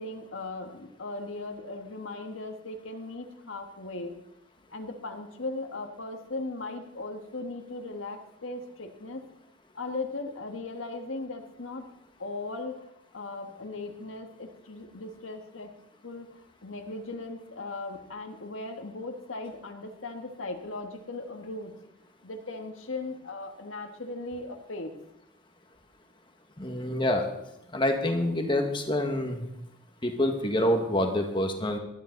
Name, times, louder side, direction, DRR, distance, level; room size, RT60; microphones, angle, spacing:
voice 1, 0.0-4.2 4.7-9.2 9.7-11.9 12.2-12.8 13.1-15.7 16.0-21.7 22.2-24.9, left 2 dB, 85° left, 4 dB, 1.7 m, -38 dB
voice 2, 26.6-27.3 27.7-29.4 30.0-31.8, left 1 dB, 25° left, 4 dB, 1.6 m, -26 dB
19.0 x 12.5 x 4.0 m, 0.85 s
head